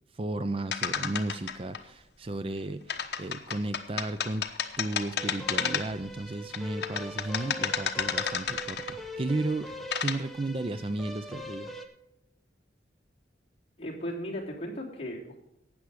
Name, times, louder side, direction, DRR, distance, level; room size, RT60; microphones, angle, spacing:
voice 1, 0.1-4.5 4.8-9.7 10.0-11.7, right 2 dB, 30° right, 11 dB, 0.4 m, -34 dB
sound 1, 0.7-1.8 2.9-6.1 6.5-9.1 9.7-10.2, left 7 dB, 60° left, 1.0 m, -31 dB
sound 2, 5.2-11.9, equal, ahead, 1.0 m, -42 dB
voice 2, 13.8-15.4, equal, 35° left, -4 dB, 3.1 m, -36 dB
13.0 x 8.9 x 4.8 m, 0.85 s
head